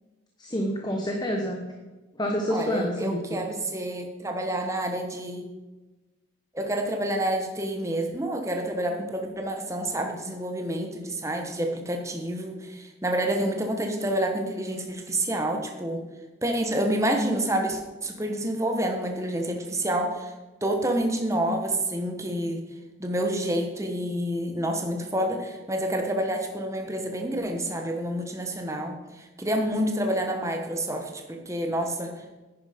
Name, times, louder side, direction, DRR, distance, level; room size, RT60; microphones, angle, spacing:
voice 1, 0.4-1.6 2.2-3.4, equal, 20° left, 1 dB, 1.0 m, -28 dB
voice 2, 2.5-5.5 6.5-16.0 16.4-20.3 20.6-22.6 23.0-32.4, right 1 dB, 15° right, 4 dB, 1.2 m, -28 dB
10.5 x 9.9 x 5.1 m, 1.2 s
head